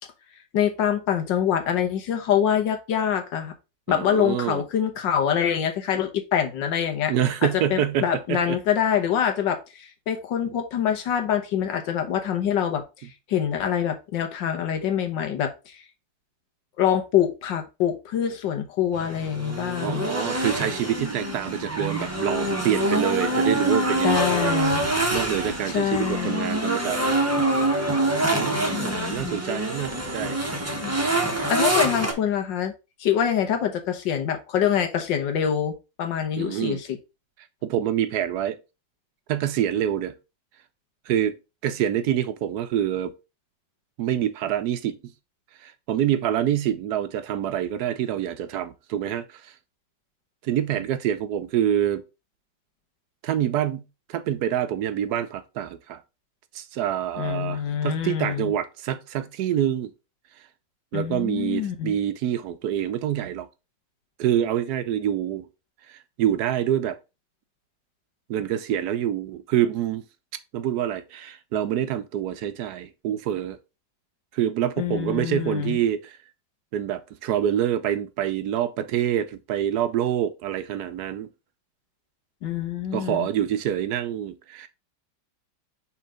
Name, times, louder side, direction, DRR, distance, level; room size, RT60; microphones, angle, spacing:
voice 1, 0.5-3.5 3.9-7.1 7.7-15.8 16.8-20.1 24.0-24.9 25.7-26.5 28.7-29.3 30.7-31.0 31.5-32.7 33.0-37.0 57.2-58.5 60.9-62.0 74.8-75.8 82.4-83.3, left 9 dB, 80° left, 1.7 m, -25 dB
voice 2, 3.9-4.6 7.1-8.6 19.8-24.6 25.1-27.2 28.3-30.4 36.4-36.8 37.6-38.6 39.3-40.1 41.1-41.4 41.6-43.1 44.0-45.1 45.6-49.5 50.4-52.0 53.2-53.8 54.1-56.0 56.5-59.9 60.9-63.5 64.2-65.5 65.9-67.0 68.3-70.0 70.5-73.6 74.3-76.2 76.7-81.3 82.9-84.7, right 10 dB, 70° right, 1.1 m, -26 dB
sound 1, 18.9-32.1, right 1 dB, 10° right, 0.8 m, -25 dB
5.6 x 3.6 x 4.9 m
omnidirectional pair, 2.0 m